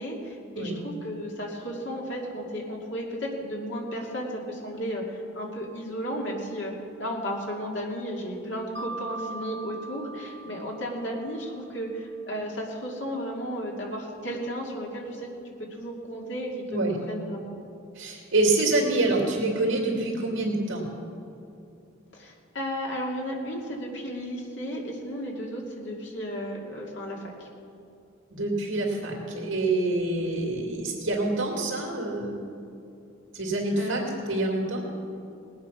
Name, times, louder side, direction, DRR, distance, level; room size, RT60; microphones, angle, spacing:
voice 1, 0.0-6.7 7.0-15.3 15.7-17.6 22.1-27.5 33.8-34.1, equal, 65° left, -2 dB, 2.4 m, -34 dB
Mallet percussion, 8.7-11.5, right 2 dB, 60° right, 1.2 m, -40 dB
voice 2, 17.9-20.9 28.3-32.4 33.3-34.8, right 2 dB, 80° right, -1 dB, 2.6 m, -26 dB
19.5 x 8.9 x 5.9 m, 2.6 s
head